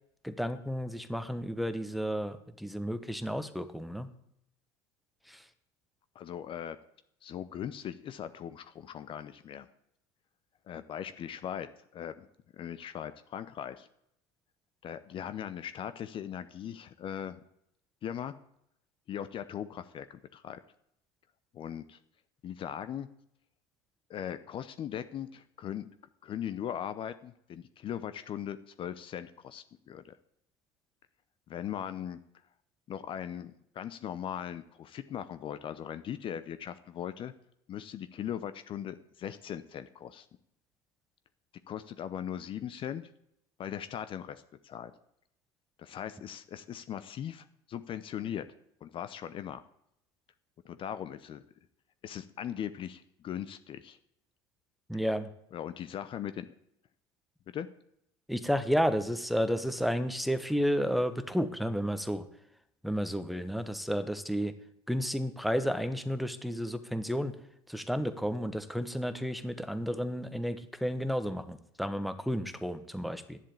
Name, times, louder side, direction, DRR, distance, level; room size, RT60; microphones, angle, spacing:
voice 1, 0.2-4.1 5.3-5.5 54.9-55.3 58.3-62.3 62.8-64.5 64.9-67.4 67.7-73.4, equal, ahead, 10 dB, 1.1 m, -32 dB
voice 2, 6.1-6.8 7.2-9.7 10.7-12.3 12.5-13.9 14.8-17.4 18.0-18.4 19.1-20.6 21.5-22.0 22.4-23.1 24.1-25.9 26.2-30.2 31.5-32.2 32.9-37.3 37.7-40.3 41.7-43.1 43.6-44.9 45.8-48.5 48.8-49.6 50.6-51.4 52.0-54.0 55.5-56.5 57.5-57.7, left 9 dB, 40° left, 12 dB, 0.8 m, -39 dB
11.0 x 7.5 x 8.5 m, 0.75 s
hypercardioid pair, 90°, 13 cm